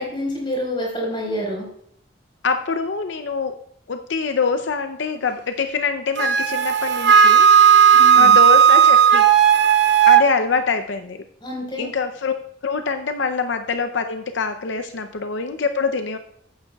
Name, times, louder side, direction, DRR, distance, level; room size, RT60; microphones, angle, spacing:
voice 1, 0.0-1.7 7.9-8.4 11.4-11.9, equal, 25° left, -2 dB, 4.5 m, -27 dB
voice 2, 2.4-3.6 3.9-7.7 8.1-9.3 10.1-11.2 11.8-16.2, left 5 dB, 75° left, 8 dB, 0.6 m, -24 dB
Wind instrument woodwind instrument, 6.2-10.3, right 8 dB, 65° right, 0.7 m, -13 dB
14.5 x 9.5 x 2.3 m, 0.69 s
head